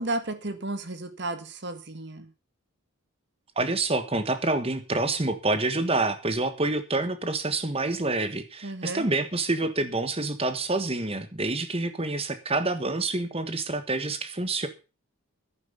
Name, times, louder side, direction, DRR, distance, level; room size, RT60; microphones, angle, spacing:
voice 1, 0.0-2.3 8.6-9.1, right 2 dB, 55° right, 10 dB, 1.8 m, -33 dB
voice 2, 3.6-14.7, right 2 dB, 25° right, 10 dB, 1.4 m, -27 dB
10.5 x 9.4 x 6.7 m, 0.32 s
head